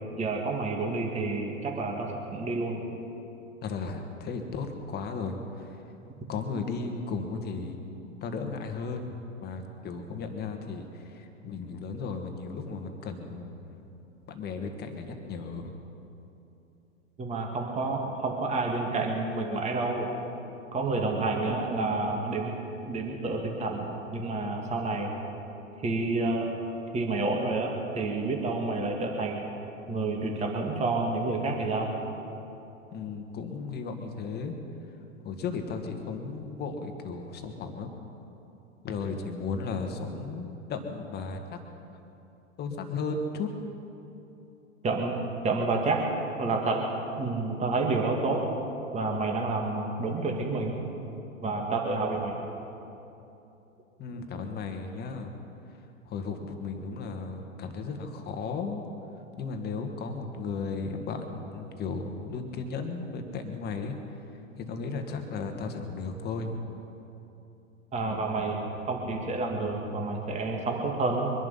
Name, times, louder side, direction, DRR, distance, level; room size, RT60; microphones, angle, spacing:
voice 1, 0.2-2.8 17.2-20.1 20.7-22.6 22.9-25.2 25.8-26.5 26.9-29.4 29.9-32.0 44.8-45.2 45.4-46.0 46.4-46.8 47.2-48.4 48.9-50.8 51.4-52.4 67.9-71.3, right 3 dB, 15° right, 1 dB, 2.0 m, -29 dB
voice 2, 3.6-5.8 6.3-7.8 8.2-9.1 9.4-13.5 14.3-15.8 32.9-34.6 35.2-37.9 38.8-41.6 42.6-43.5 54.0-55.3 56.1-58.9 59.4-64.0 64.6-66.6, left 4 dB, 25° left, 5 dB, 1.7 m, -35 dB
23.5 x 11.0 x 5.6 m, 2.9 s
hypercardioid pair, 115°, 40 cm